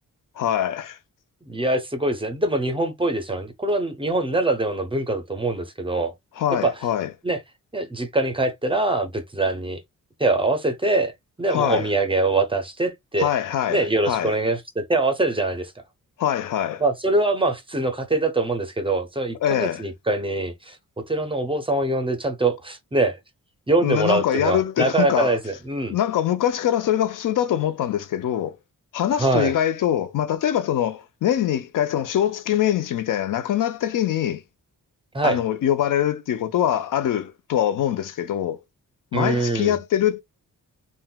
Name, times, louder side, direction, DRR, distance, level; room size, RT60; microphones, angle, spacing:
voice 1, 0.4-1.0 6.4-7.1 11.5-11.9 13.2-14.4 16.2-16.8 19.4-19.8 23.8-25.4 25.9-28.6 28.9-34.4 35.2-38.6 39.1-40.2, left 10 dB, 70° left, 0.5 m, -23 dB
voice 2, 1.5-6.1 6.6-6.7 7.2-7.4 7.7-9.8 10.2-11.1 11.4-13.3 13.7-15.7 16.8-20.8 21.1-23.2 23.7-26.0 29.2-29.5 35.1-35.4 39.1-39.8, right 2 dB, 15° right, 0.5 m, -23 dB
3.6 x 2.1 x 2.3 m
wide cardioid pair, 155°, 33 cm